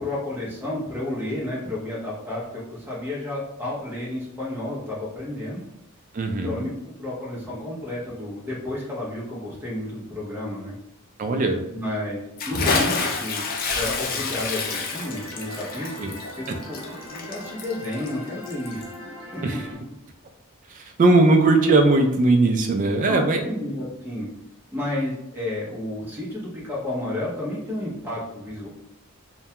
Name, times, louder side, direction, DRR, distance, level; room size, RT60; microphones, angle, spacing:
voice 1, 0.0-5.6 6.3-10.7 11.7-13.5 13.7-18.9 19.3-19.4 23.1-24.3 24.7-28.7, left 1 dB, 10° right, -6 dB, 0.6 m, -31 dB
voice 2, 6.1-6.6 11.2-11.6 16.0-16.1 19.4-19.6 20.7-23.4, right 2 dB, 40° right, 5 dB, 0.3 m, -19 dB
Bathtub (filling or washing) / Splash splatter, 12.4-18.9, left 4 dB, 45° left, 0.3 m, -28 dB
sound 1, 14.5-19.7, left 1 dB, 65° right, 0.7 m, -40 dB
2.2 x 2.2 x 2.8 m, 0.83 s
head